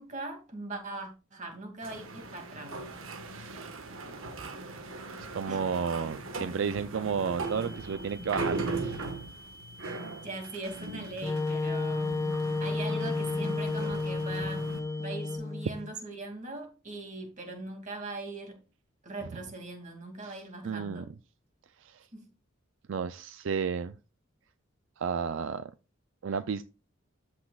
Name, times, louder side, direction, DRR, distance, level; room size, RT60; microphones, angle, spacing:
voice 1, 0.0-2.8 5.5-5.9 10.2-12.2 12.6-14.6 15.0-18.6 19.0-21.1 22.1-22.3, right 2 dB, 35° right, 2.4 m, -40 dB
sound 1, 1.8-14.8, right 3 dB, 90° right, 1.4 m, -39 dB
voice 2, 3.3-3.7 5.3-9.0 20.2-21.0 21.8-22.1 22.9-24.0 25.0-25.7 26.2-26.6, right 6 dB, 70° right, 0.4 m, -32 dB
sound 2, 7.4-15.4, equal, 20° right, 2.2 m, -51 dB
Wind instrument woodwind instrument, 11.2-15.9, left 3 dB, 15° left, 0.3 m, -31 dB
14.0 x 6.1 x 2.4 m
head